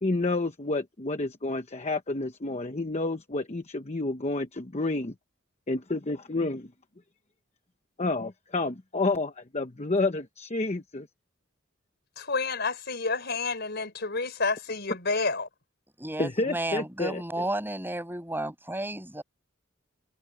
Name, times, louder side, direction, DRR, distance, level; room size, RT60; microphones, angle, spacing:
voice 1, 0.0-5.1 5.7-6.7 8.0-11.1 16.2-17.2, left 2 dB, 30° left, 0.9 m, -29 dB
voice 2, 12.2-15.5, left 4 dB, 55° left, 4.9 m, -29 dB
voice 3, 16.0-19.2, right 1 dB, 10° right, 7.4 m, -33 dB
head